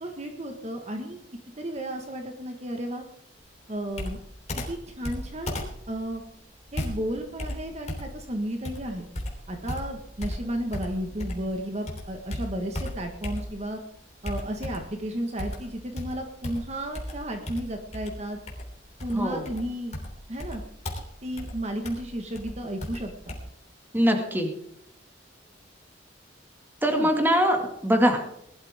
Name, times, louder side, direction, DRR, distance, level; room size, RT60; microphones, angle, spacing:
voice 1, 0.0-1.2 1.6-3.1 3.7-4.2 4.7-6.2 6.7-9.1 9.5-13.8 14.2-18.4 19.0-20.0 20.3-20.6 21.2-23.4 26.9-27.1, right 1 dB, 40° right, 3 dB, 1.6 m, -33 dB
Computer keyboard, 3.9-11.5 11.9-13.8 14.2-15.0 15.4-23.4, left 1 dB, 40° left, 3.3 m, -36 dB
voice 2, 19.1-19.4 23.9-24.5 26.8-27.6 27.8-28.2, equal, 10° right, 3 dB, 2.1 m, -22 dB
20.0 x 12.5 x 3.6 m, 0.76 s
head